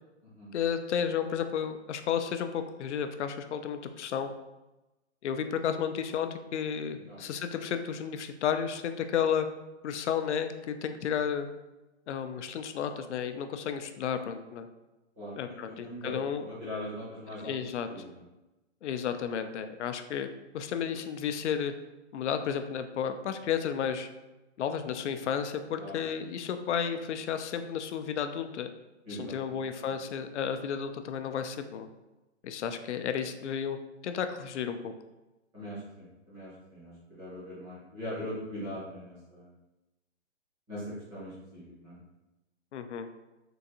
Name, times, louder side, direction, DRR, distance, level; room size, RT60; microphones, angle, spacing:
voice 1, 0.5-4.3 5.2-9.5 9.8-11.5 12.1-14.7 15.4-16.5 17.4-17.9 18.8-20.3 20.5-21.7 22.1-24.1 24.6-28.7 29.1-31.9 32.4-33.8 34.0-34.9 42.7-43.1, left 8 dB, 75° left, 9 dB, 0.5 m, -32 dB
voice 2, 15.2-17.5 17.9-18.1 25.8-26.0 29.0-29.6 29.8-29.9 35.5-39.5 40.7-42.0, equal, 10° right, -9 dB, 0.6 m, -41 dB
3.7 x 2.5 x 2.8 m, 1.0 s
hypercardioid pair, 165°, 35 cm